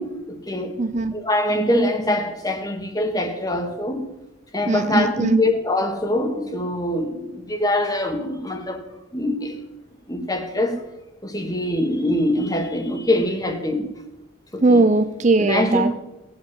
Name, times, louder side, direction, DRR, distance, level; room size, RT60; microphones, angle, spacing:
voice 1, 0.0-0.7 1.1-4.1 4.5-8.8 9.1-9.7 10.1-10.8 11.2-13.9 14.5-14.9 15.4-15.9, left 1 dB, 20° left, 6 dB, 1.6 m, -23 dB
voice 2, 0.8-1.1 4.7-5.4 14.6-15.9, right 3 dB, 35° right, 11 dB, 0.5 m, -19 dB
18.0 x 8.0 x 7.7 m, 1.0 s
head